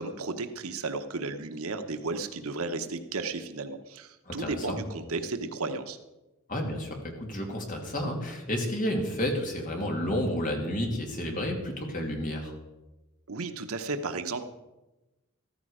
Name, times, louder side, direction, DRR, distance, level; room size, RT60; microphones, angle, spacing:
voice 1, 0.0-6.0 13.3-14.5, right 3 dB, 75° right, 8 dB, 1.1 m, -34 dB
voice 2, 4.3-4.8 6.5-12.5, left 1 dB, 40° left, 1 dB, 2.9 m, -31 dB
14.5 x 14.0 x 5.0 m, 1.1 s
head